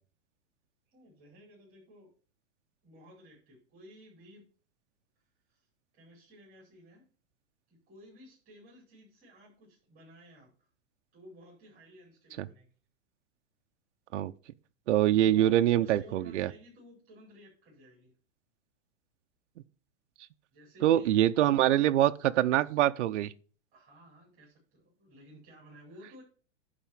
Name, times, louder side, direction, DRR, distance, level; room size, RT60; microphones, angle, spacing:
voice 1, 0.9-2.1 2.8-4.5 5.5-5.7 5.9-7.0 7.7-10.5 11.1-12.7 15.2-18.1 20.5-21.1 23.7-26.2, equal, 20° right, 4.6 m, -55 dB
voice 2, 14.9-16.5 20.8-23.3, right 12 dB, 65° right, 0.7 m, -24 dB
10.5 x 4.3 x 7.3 m
supercardioid pair, 175°, 37 cm